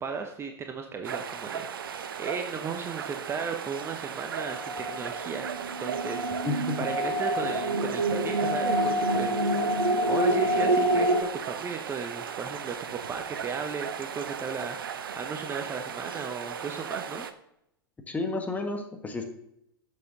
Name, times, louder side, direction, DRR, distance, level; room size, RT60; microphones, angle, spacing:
voice 1, 0.0-5.5 5.8-17.3, right 5 dB, 20° right, 5 dB, 0.9 m, -36 dB
sound 1, 1.0-17.3, right 7 dB, 65° right, 0.8 m, -37 dB
sound 2, 4.4-11.2, right 1 dB, 80° right, 1.2 m, -27 dB
voice 2, 6.4-6.8 18.1-19.2, left 3 dB, 10° left, 5 dB, 1.6 m, -31 dB
12.0 x 7.0 x 4.0 m, 0.78 s
figure-of-eight pair, 95°, 13 cm